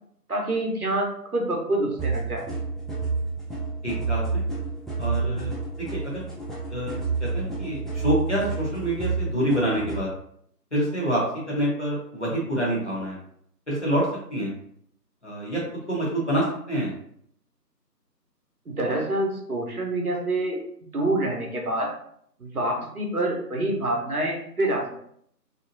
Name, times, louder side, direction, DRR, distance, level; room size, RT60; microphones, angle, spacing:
voice 1, 0.3-2.4 18.7-20.6 20.9-21.9 22.4-24.8, right 1 dB, 60° right, 0 dB, 0.8 m, -26 dB
sound 1, 2.0-10.0, right 4 dB, ahead, 0.4 m, -29 dB
voice 2, 3.8-4.4 5.0-5.5 5.9-6.2 6.7-10.1 10.7-11.2 11.5-13.2 13.7-14.0 14.3-14.5 15.2-15.6 15.9-16.9, right 1 dB, 45° left, -5 dB, 0.9 m, -27 dB
2.6 x 2.2 x 2.6 m, 0.67 s
figure-of-eight pair, 175°, 50 cm